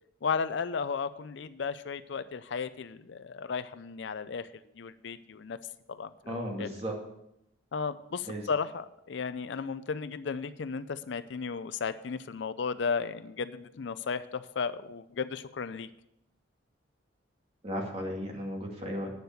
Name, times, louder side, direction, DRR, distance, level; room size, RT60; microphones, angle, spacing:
voice 1, 0.2-5.6 5.9-6.7 7.7-15.9, left 5 dB, 70° left, 14 dB, 0.5 m, -34 dB
voice 2, 6.2-7.0 8.2-8.4 17.6-19.1, equal, 35° right, 0 dB, 2.2 m, -35 dB
9.4 x 7.0 x 6.5 m, 0.80 s
head